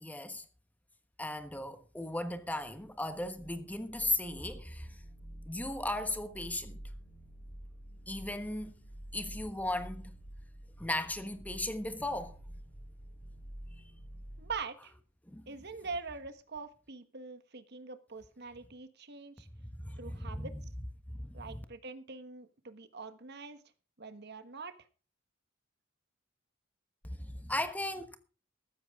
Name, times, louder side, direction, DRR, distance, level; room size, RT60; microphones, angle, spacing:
voice 1, 0.0-0.4 1.2-4.9 5.5-6.8 8.1-8.7 9.1-10.1 10.8-12.4 15.3-15.4 19.6-20.5 21.1-21.6 27.1-28.2, left 1 dB, 10° left, 1.2 m, -36 dB
sound 1, 2.6-14.6, right 1 dB, 35° left, 7.2 m, -49 dB
voice 2, 14.4-14.9 15.5-19.5 20.0-20.5 21.3-23.6 24.0-24.7, right 4 dB, 55° right, 1.4 m, -43 dB
14.5 x 13.5 x 3.7 m
head